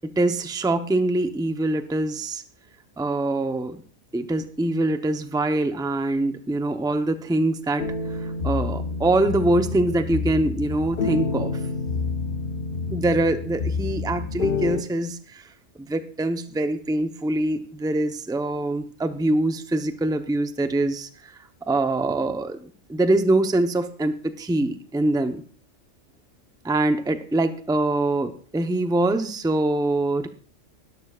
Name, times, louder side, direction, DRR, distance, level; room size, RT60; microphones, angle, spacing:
voice 1, 0.0-2.4 3.0-3.8 4.1-7.9 8.1-11.6 12.9-15.4 15.8-21.3 21.7-25.4 26.6-30.3, right 2 dB, 5° right, 8 dB, 0.7 m, -24 dB
sound 1, 7.8-14.8, left 4 dB, 50° left, 0.9 m, -28 dB
19.0 x 12.0 x 2.4 m, 0.43 s
omnidirectional pair, 1.3 m